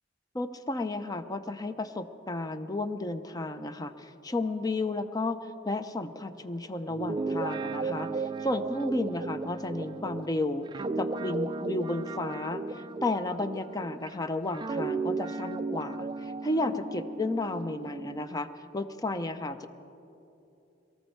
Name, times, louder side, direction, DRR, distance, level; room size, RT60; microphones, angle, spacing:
voice 1, 0.3-10.7 11.0-18.5 18.7-19.7, left 2 dB, 20° left, 10 dB, 0.6 m, -33 dB
Guitar, 6.9-14.1 14.5-18.3, right 3 dB, 25° right, 0.3 m, -35 dB
23.0 x 13.5 x 4.6 m, 2.9 s
head